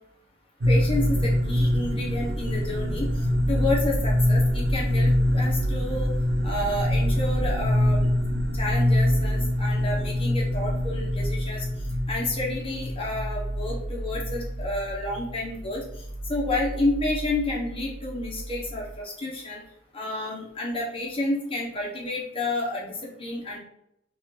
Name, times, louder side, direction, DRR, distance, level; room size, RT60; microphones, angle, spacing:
sound 1, 0.6-19.0, equal, 55° right, 0.7 m, -25 dB
voice 1, 0.7-6.1 6.4-8.1 8.5-11.6 12.1-16.0 16.3-19.6 19.9-23.6, left 2 dB, 30° left, -3 dB, 1.2 m, -30 dB
5.9 x 2.6 x 3.3 m, 0.75 s
head